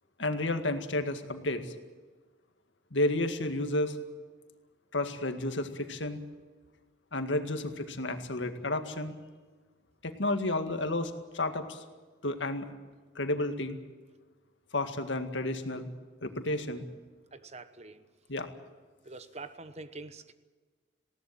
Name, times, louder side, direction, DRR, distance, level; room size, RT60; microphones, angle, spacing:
voice 1, 0.2-1.7 2.9-4.0 4.9-6.2 7.1-9.1 10.0-11.8 12.2-12.7 13.2-13.8 14.7-15.9 16.2-16.8 18.3-18.5, left 2 dB, 75° left, 7 dB, 2.1 m, -31 dB
voice 2, 17.3-18.0 19.0-20.3, right 3 dB, 35° right, 12 dB, 1.2 m, -45 dB
20.0 x 17.5 x 9.1 m, 1.3 s
head